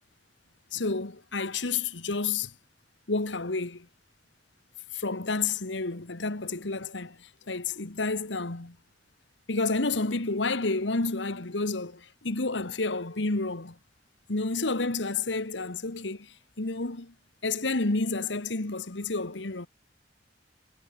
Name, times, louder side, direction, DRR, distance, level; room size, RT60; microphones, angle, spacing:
voice 1, 0.7-2.5 3.1-3.9 4.9-8.8 9.5-13.7 14.3-17.1 17.4-19.7, left 3 dB, 85° left, 1.7 m, -30 dB
head